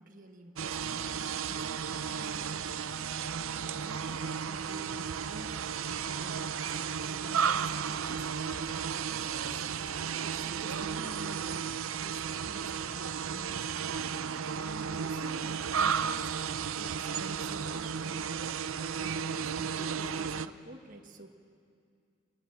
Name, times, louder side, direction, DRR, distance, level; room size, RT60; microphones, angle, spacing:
voice 1, 0.0-8.5 8.8-9.7 10.2-11.7 11.9-14.0 14.6-18.5 18.9-21.3, right 2 dB, 40° right, 3 dB, 1.6 m, -50 dB
sound 1, 0.6-20.5, right 7 dB, 80° right, 0.6 m, -34 dB
27.5 x 20.0 x 7.5 m, 2.3 s
head